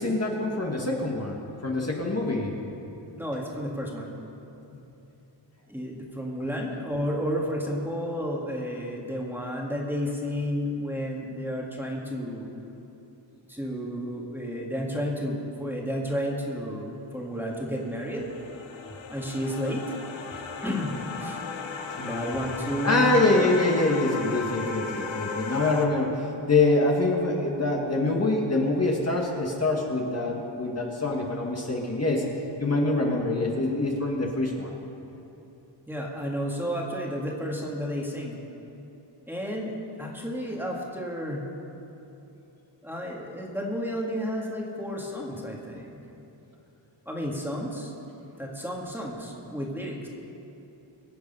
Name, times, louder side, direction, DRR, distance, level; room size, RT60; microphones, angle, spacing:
voice 1, 0.0-2.6 4.7-4.8 22.0-22.4 22.8-32.3 32.6-34.7, left 2 dB, 35° left, -1 dB, 1.7 m, -25 dB
voice 2, 3.2-4.2 5.7-12.5 13.5-18.3 19.1-19.9 20.6-21.4 22.0-23.2 35.9-38.4 39.3-41.5 42.8-46.0 47.1-47.9 48.4-50.1, equal, 5° right, -2 dB, 1.9 m, -32 dB
sound 1, 17.4-25.9, left 5 dB, 85° left, 1.2 m, -36 dB
23.5 x 8.0 x 5.5 m, 2.9 s
wide cardioid pair, 120°, 45 cm